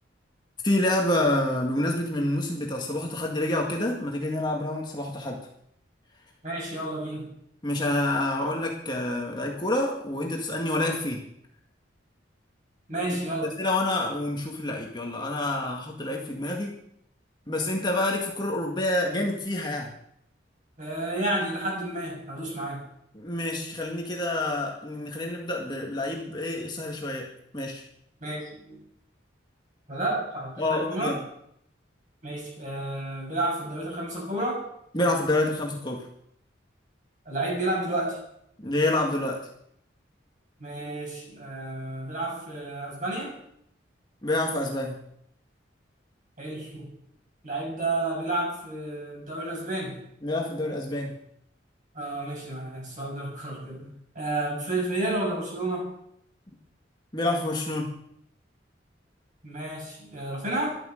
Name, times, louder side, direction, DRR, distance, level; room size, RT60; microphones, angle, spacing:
voice 1, 0.6-5.4 7.6-11.3 13.4-16.7 17.5-19.9 23.1-27.3 27.5-27.8 30.6-31.2 34.9-36.1 38.6-39.5 44.2-45.0 50.2-51.2 53.8-53.9 57.1-57.9, left 1 dB, 20° left, -1 dB, 1.9 m, -28 dB
voice 2, 6.4-7.4 12.9-13.5 20.8-22.8 28.2-28.8 29.9-31.2 32.2-34.6 37.2-38.2 40.6-43.3 46.4-46.9 47.4-50.0 51.9-53.8 54.1-55.9 59.4-60.8, right 2 dB, 40° right, -2 dB, 6.7 m, -31 dB
14.0 x 11.5 x 6.5 m, 0.73 s
head